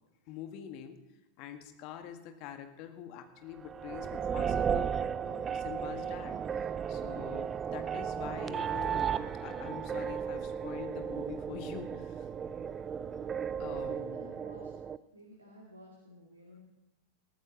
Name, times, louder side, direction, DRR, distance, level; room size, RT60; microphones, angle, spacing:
voice 1, 0.3-1.0 1.4-4.9 5.2-9.1 9.4-12.3 13.6-14.4, left 9 dB, 40° left, 6 dB, 1.6 m, -45 dB
sound 1, 3.6-15.0, right 7 dB, 20° right, 0.4 m, -35 dB
voice 2, 13.4-14.7 15.1-16.6, equal, 80° right, -1 dB, 2.3 m, -54 dB
20.5 x 14.0 x 3.0 m, 0.96 s
figure-of-eight pair, 90°, 0 cm